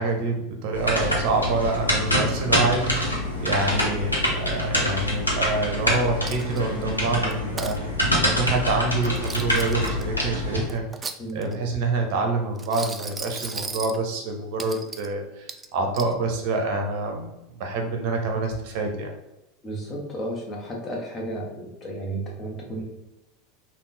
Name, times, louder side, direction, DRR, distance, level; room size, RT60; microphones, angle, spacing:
voice 1, 0.0-7.8 8.2-10.9 11.3-17.3 17.6-19.1, right 3 dB, 55° right, 3 dB, 0.7 m, -26 dB
sound 1, 0.7-10.7, left 1 dB, 90° left, 0.8 m, -25 dB
Coin (dropping), 6.3-6.8 7.3-7.8 8.9-10.0 10.7-11.6 12.6-14.0 14.6-15.1 15.5-16.1, right 4 dB, 20° right, 0.3 m, -36 dB
voice 2, 19.6-22.8, right 1 dB, 30° left, -1 dB, 1.1 m, -33 dB
3.6 x 2.3 x 4.0 m, 0.97 s
figure-of-eight pair, 80°, 0 cm